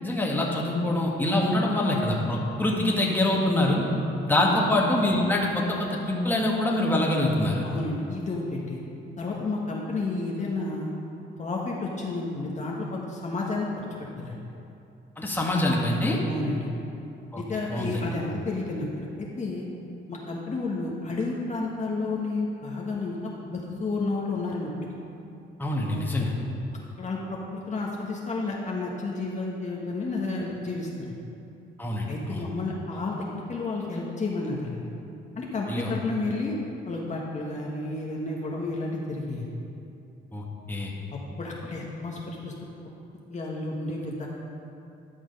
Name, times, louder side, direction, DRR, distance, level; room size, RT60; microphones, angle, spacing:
voice 1, 0.0-3.8 4.2-7.7 15.2-16.2 17.3-17.4 17.7-18.1 25.6-26.3 31.8-32.4 35.7-35.9 40.3-40.9, left 1 dB, 10° left, -3 dB, 1.6 m, -25 dB
voice 2, 7.6-8.8 9.2-10.9 11.4-13.7 14.2-14.3 16.3-16.7 17.4-19.7 20.1-23.1 23.5-24.9 27.0-31.1 32.1-34.8 35.4-36.5 36.9-39.5 41.1-42.5 43.3-44.3, left 3 dB, 35° left, -3 dB, 1.3 m, -31 dB
11.0 x 6.1 x 5.3 m, 2.7 s
cardioid pair, 90°, 20 cm